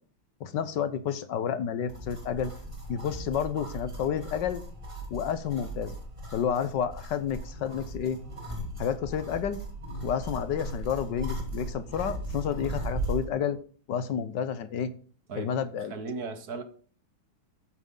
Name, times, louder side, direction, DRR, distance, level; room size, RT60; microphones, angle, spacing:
voice 1, 0.4-2.5 2.9-4.6 5.1-6.0 6.3-8.2 8.8-9.6 10.0-13.6 13.9-14.9 15.3-15.9, left 8 dB, 70° left, 1.4 m, -30 dB
sound 1, 1.9-13.3, right 1 dB, 15° right, 2.9 m, -37 dB
voice 2, 15.9-16.6, right 4 dB, 55° right, 1.6 m, -36 dB
12.5 x 9.2 x 3.8 m
omnidirectional pair, 2.1 m